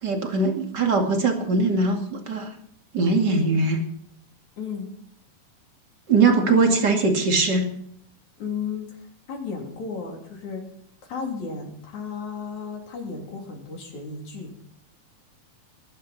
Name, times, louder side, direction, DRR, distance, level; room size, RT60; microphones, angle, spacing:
voice 1, 0.0-2.5 2.9-3.8 6.1-7.7, right 3 dB, 35° right, 3 dB, 2.5 m, -21 dB
voice 2, 4.6-4.9 8.4-8.9 9.3-10.6 11.1-14.5, left 5 dB, 60° left, 0 dB, 4.5 m, -33 dB
21.0 x 11.5 x 4.3 m, 0.66 s
omnidirectional pair, 3.7 m